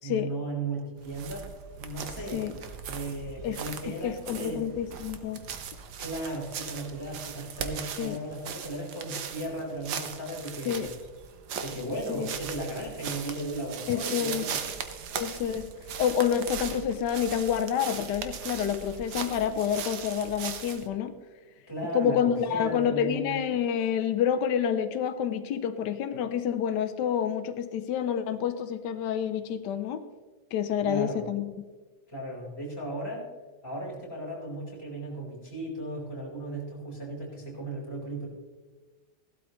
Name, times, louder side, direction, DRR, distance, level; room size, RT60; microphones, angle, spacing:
voice 1, 0.0-1.5 1.8-2.4 2.9-4.6 6.0-10.9 11.6-14.8 21.7-23.4 30.8-31.2 32.1-33.3 33.6-38.3, right 1 dB, 15° left, -6 dB, 4.5 m, -36 dB
sound 1, 1.0-20.9, right 7 dB, 75° right, 1.5 m, -39 dB
voice 2, 3.9-5.4 8.0-8.2 10.7-10.9 12.1-12.3 13.9-14.5 15.1-15.7 16.0-21.1 21.9-30.0 30.5-31.5, left 8 dB, 90° left, 10 dB, 1.3 m, -28 dB
16.0 x 12.0 x 3.1 m, 1.3 s
omnidirectional pair, 1.8 m